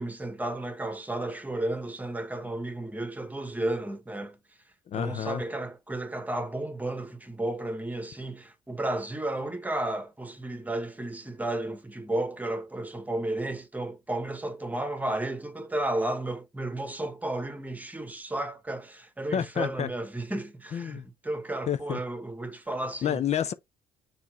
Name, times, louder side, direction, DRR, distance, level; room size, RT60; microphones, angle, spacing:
voice 1, 0.0-4.4 4.9-23.2, right 1 dB, 10° right, 1.2 m, -33 dB
voice 2, 4.9-5.4 19.3-19.9 20.7-21.0 21.7-22.0 23.0-23.5, left 9 dB, 45° left, 0.5 m, -29 dB
7.0 x 3.1 x 4.7 m
cardioid pair, 100°, 15 cm